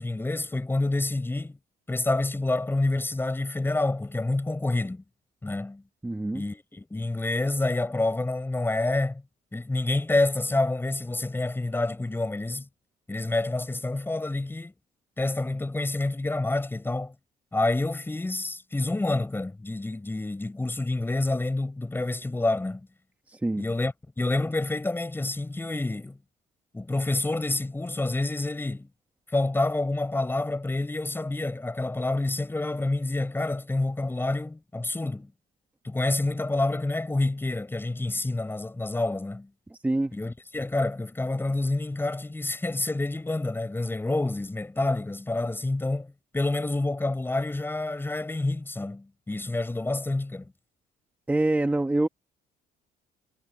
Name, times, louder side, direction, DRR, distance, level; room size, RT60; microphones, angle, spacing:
voice 1, 0.0-1.6 1.9-5.0 5.4-5.8 6.3-9.2 9.5-12.7 13.1-14.7 15.2-17.1 17.5-22.9 23.6-26.2 26.7-28.9 29.3-35.3 35.8-39.5 40.1-50.5, left 2 dB, 10° left, 8.0 m, -28 dB
voice 2, 6.0-6.4 23.3-23.6 39.7-40.1 51.3-52.1, right 2 dB, 10° right, 1.4 m, -25 dB
cardioid pair, 110°, 17 cm